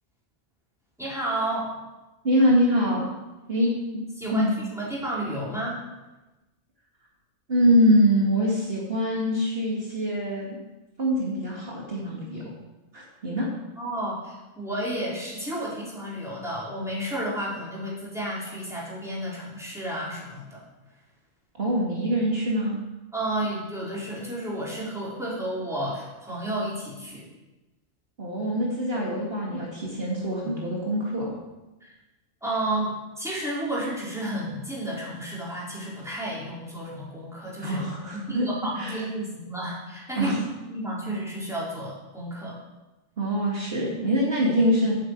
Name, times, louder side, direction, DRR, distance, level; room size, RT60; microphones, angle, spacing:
voice 1, 1.0-1.7 3.5-3.7 4.2-4.5 4.8-5.8 13.8-20.6 23.1-27.3 31.8-31.9 32.4-37.8 38.1-40.4 40.7-42.6, right 1 dB, ahead, -6 dB, 4.0 m, -31 dB
voice 2, 2.2-3.1 3.5-4.0 4.3-4.6 7.5-10.6 11.0-12.4 12.9-13.5 21.6-22.8 28.2-31.4 37.6-38.5 38.8-39.0 40.2-40.4 43.2-44.9, equal, 55° right, -4 dB, 2.2 m, -24 dB
9.0 x 7.6 x 8.1 m, 1.1 s
omnidirectional pair, 1.3 m